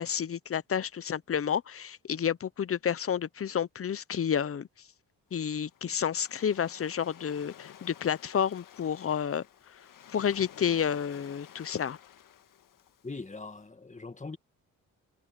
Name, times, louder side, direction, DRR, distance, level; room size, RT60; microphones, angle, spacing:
voice 1, 0.0-4.7 5.3-9.4 10.1-12.0, left 8 dB, 45° left, 0.8 m, -30 dB
Waves surf, 5.3-13.5, left 10 dB, 75° left, 1.8 m, -53 dB
voice 2, 13.0-14.4, left 3 dB, 20° left, 2.1 m, -41 dB
cardioid pair, 75°, 33 cm